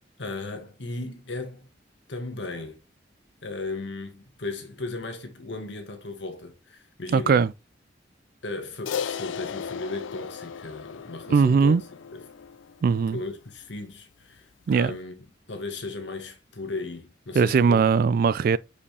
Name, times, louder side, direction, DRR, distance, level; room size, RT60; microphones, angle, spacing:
voice 1, 0.2-1.6 2.1-2.8 3.4-7.4 8.4-11.8 12.1-12.3 12.9-17.8, left 3 dB, 70° left, 1.6 m, -36 dB
voice 2, 7.1-7.5 11.3-11.8 12.8-13.2 14.7-15.0 17.3-18.6, right 5 dB, 50° right, 0.3 m, -20 dB
Crash cymbal, 8.9-13.4, left 7 dB, 85° left, 0.4 m, -36 dB
7.0 x 4.9 x 3.3 m
head